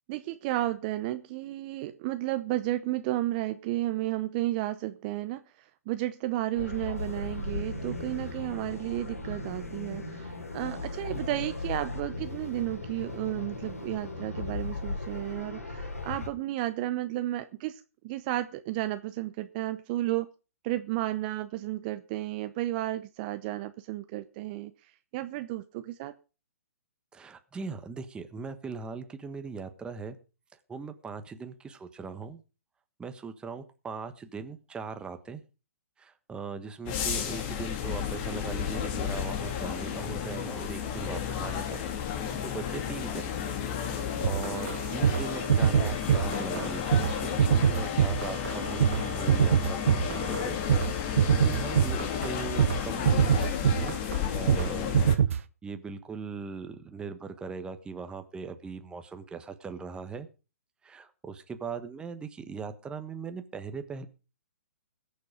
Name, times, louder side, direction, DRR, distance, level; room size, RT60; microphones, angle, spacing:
voice 1, 0.1-20.3 20.6-26.1, right 15 dB, 35° right, 10 dB, 0.8 m, -33 dB
sound 1, 6.6-16.3, left 3 dB, 85° left, 3.2 m, -37 dB
voice 2, 27.1-30.2 30.7-32.4 33.0-35.4 36.0-43.3 44.2-47.1 47.4-50.6 50.9-54.0 54.3-54.9 55.3-60.3 60.8-64.1, right 5 dB, 10° right, 8 dB, 1.4 m, -40 dB
sound 2, 36.9-55.2, left 8 dB, 40° left, 2.4 m, -32 dB
sound 3, 44.2-50.9 51.2-52.3 52.6-52.8 53.1-54.2 54.5-54.7 54.9-55.4, right 8 dB, 65° right, 0.9 m, -24 dB
21.0 x 7.0 x 4.9 m, 0.33 s
hypercardioid pair, 130°, 8 cm